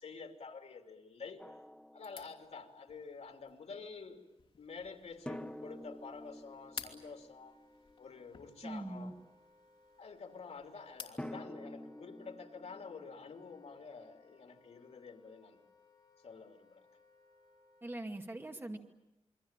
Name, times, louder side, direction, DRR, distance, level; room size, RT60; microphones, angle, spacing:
voice 1, 0.0-1.4 1.9-4.2 4.6-7.6 8.0-9.1 10.0-15.6 16.2-16.9, left 5 dB, 80° left, 5 dB, 2.8 m, -49 dB
Drum, 1.4-2.8 5.3-8.2 11.2-14.0, left 1 dB, 10° left, 1.4 m, -49 dB
sound 1, 2.0-11.3, left 5 dB, 55° left, 2.9 m, -54 dB
Wind instrument woodwind instrument, 6.1-18.0, left 3 dB, 40° left, 7.2 m, -67 dB
voice 2, 8.6-9.1 17.8-18.8, right 1 dB, 20° right, 4 dB, 2.3 m, -42 dB
28.0 x 23.0 x 8.9 m, 0.92 s
wide cardioid pair, 140°, 11 cm